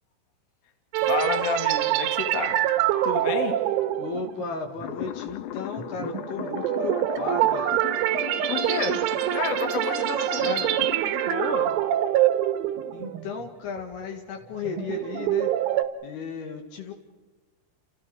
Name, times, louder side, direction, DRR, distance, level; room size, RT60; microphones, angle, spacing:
sound 1, 0.9-13.5 13.8-14.0 14.5-15.9, right 12 dB, 85° right, 3.6 m, -25 dB
voice 1, 1.0-2.7 3.0-3.6 8.5-9.0 9.3-10.5 11.0-11.7, left 6 dB, 45° left, 5 dB, 2.4 m, -30 dB
voice 2, 4.0-7.8 10.4-10.8 12.9-15.5 16.0-16.9, left 5 dB, 65° left, 5 dB, 3.5 m, -35 dB
sound 2, 4.8-11.0, left 13 dB, 80° left, 2.2 m, -37 dB
29.5 x 29.0 x 4.9 m, 1.2 s
omnidirectional pair, 5.5 m